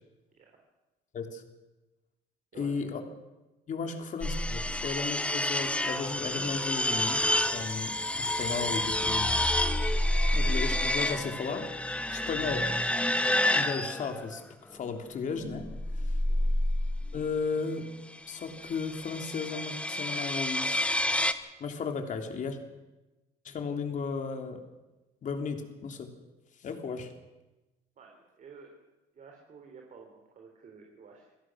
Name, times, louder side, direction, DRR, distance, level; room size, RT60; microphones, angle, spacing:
voice 1, 2.6-3.0 3.7-7.3 7.5-9.3 10.3-12.7 13.5-14.4 14.7-15.7 16.0-16.1 17.1-17.9 18.3-21.1 21.6-22.6 23.4-24.6 25.2-26.1 26.6-27.1, left 5 dB, 50° left, 5 dB, 3.2 m, -35 dB
sound 1, 4.2-14.4 15.4-17.2 18.4-21.3, left 1 dB, 5° left, 1.2 m, -29 dB
voice 2, 16.2-16.6 28.0-28.8 29.1-31.4, right 5 dB, 50° right, 1 dB, 3.9 m, -52 dB
27.0 x 17.5 x 6.4 m, 1.1 s
cardioid pair, 110°, 17 cm